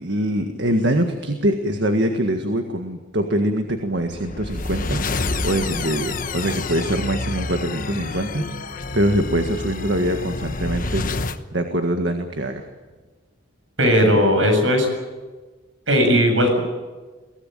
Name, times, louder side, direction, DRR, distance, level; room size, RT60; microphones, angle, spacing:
voice 1, 0.0-12.7 14.0-14.2, right 1 dB, 60° right, 5 dB, 1.8 m, -24 dB
sound 1, 4.0-11.4, left 3 dB, 45° left, 1.1 m, -28 dB
voice 2, 13.8-14.9 15.9-16.6, equal, 80° right, 5 dB, 7.7 m, -17 dB
23.5 x 18.0 x 9.2 m, 1.3 s
head